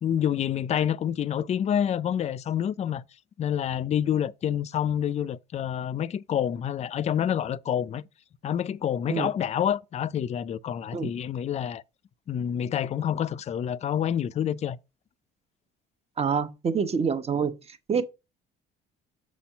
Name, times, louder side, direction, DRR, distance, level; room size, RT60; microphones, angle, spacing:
voice 1, 0.0-3.0 3.4-8.0 8.4-11.8 12.3-14.8, left 9 dB, 35° left, 0.4 m, -28 dB
voice 2, 16.2-17.5 17.9-18.0, right 6 dB, 30° right, 1.0 m, -26 dB
6.3 x 4.3 x 5.6 m
cardioid pair, 100°, 20 cm